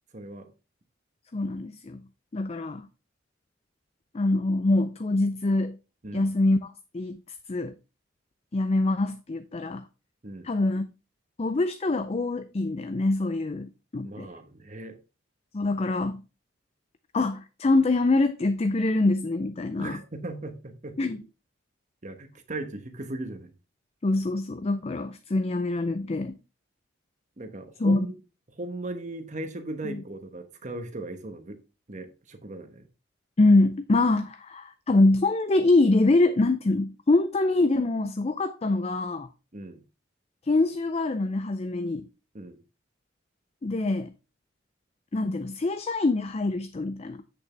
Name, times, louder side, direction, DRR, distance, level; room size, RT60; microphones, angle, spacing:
voice 1, 0.1-0.5 6.0-6.3 10.2-10.5 14.0-15.0 19.8-21.0 22.0-23.5 27.4-28.1 28.5-31.6 31.9-32.9 39.5-39.8 42.3-42.6, right 2 dB, 40° right, 1.1 m, -38 dB
voice 2, 1.3-2.0 2.3-2.9 4.1-5.8 6.1-7.2 7.5-7.7 8.5-9.9 10.4-10.9 11.4-14.3 15.5-16.2 17.1-20.0 21.0-21.2 24.0-26.3 27.8-28.1 29.8-30.0 33.4-39.3 40.4-42.0 43.6-44.1 45.1-47.2, left 2 dB, 35° left, 0.5 m, -24 dB
8.2 x 6.8 x 3.4 m
head